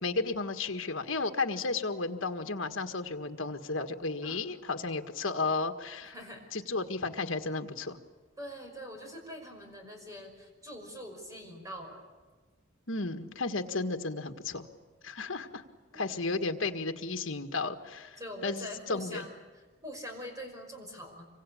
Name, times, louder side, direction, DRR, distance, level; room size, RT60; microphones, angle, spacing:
voice 1, 0.0-6.1 6.5-8.0 12.9-14.7 15.0-15.6 15.9-19.3, left 3 dB, 65° left, 6 dB, 1.7 m, -33 dB
voice 2, 6.0-6.4 8.4-12.0 15.9-16.1 18.2-21.3, equal, 15° right, 3 dB, 5.6 m, -44 dB
26.0 x 24.5 x 8.5 m, 1.3 s
head